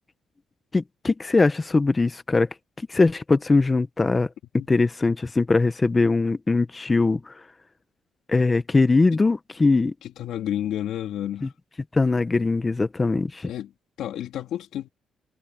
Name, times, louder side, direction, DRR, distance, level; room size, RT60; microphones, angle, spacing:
voice 1, 0.7-2.5 2.9-4.3 4.7-7.3 8.3-9.9 11.4-11.5 11.9-13.5, left 3 dB, 25° left, 1.2 m, -21 dB
voice 2, 10.0-11.5 13.5-13.7 14.0-14.9, left 11 dB, 80° left, 3.4 m, -30 dB
cardioid pair, 90°, 0 cm